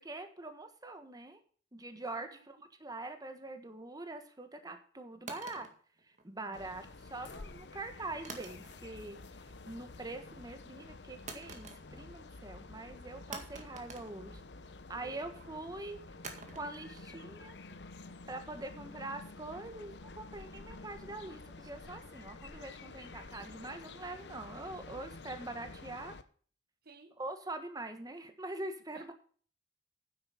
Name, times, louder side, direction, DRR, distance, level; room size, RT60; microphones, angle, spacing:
voice 1, 0.0-1.4 1.7-5.7 6.2-14.4 14.9-16.0 16.5-17.5 18.3-26.1 27.2-29.1, right 2 dB, 20° right, 7 dB, 1.4 m, -44 dB
sound 1, 5.3-6.7 8.2-9.1 9.4-9.9 11.3-12.2 12.5-12.6 13.3-14.8 16.2-19.3, right 4 dB, 45° right, 2.0 m, -49 dB
sound 2, 6.5-26.2, left 3 dB, 75° left, 0.9 m, -50 dB
voice 2, 15.0-15.3 26.8-27.2 28.9-29.1, right 4 dB, 60° right, 9 dB, 1.3 m, -54 dB
9.8 x 8.1 x 5.7 m, 0.44 s
head